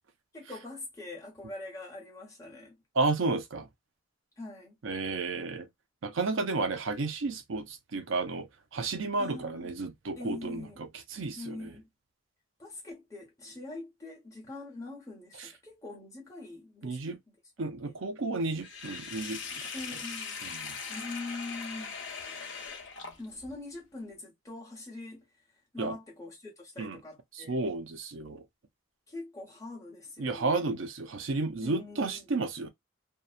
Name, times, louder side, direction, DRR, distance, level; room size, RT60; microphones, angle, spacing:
voice 1, 0.3-2.8 4.4-4.8 9.2-9.7 10.2-10.8 11.4-11.9 12.6-17.2 17.8-18.0 19.7-20.4 20.9-22.0 23.2-25.3 25.7-27.6 29.1-30.6 31.6-32.2, left 2 dB, 15° left, 1.1 m, -43 dB
voice 2, 3.0-3.6 4.8-5.7 6.0-8.5 8.7-11.6 16.8-17.2 17.6-19.6 20.5-20.7 25.8-25.9 26.8-27.0 27.5-28.4 30.2-32.7, right 3 dB, 70° right, 0.5 m, -32 dB
Sink (filling or washing), 18.6-23.5, left 5 dB, 60° left, 0.8 m, -40 dB
2.7 x 2.3 x 2.4 m
head